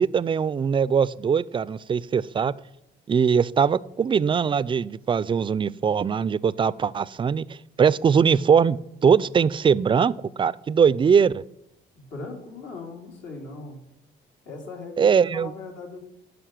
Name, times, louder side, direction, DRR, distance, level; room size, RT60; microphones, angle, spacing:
voice 1, 0.0-2.5 3.1-8.8 9.0-10.1 10.4-11.4 15.0-15.5, right 6 dB, 25° right, 19 dB, 0.3 m, -21 dB
voice 2, 12.0-13.8 14.5-16.0, left 3 dB, 80° left, 0 dB, 2.5 m, -39 dB
10.0 x 4.9 x 6.0 m, 0.82 s
cardioid pair, 80°, 19 cm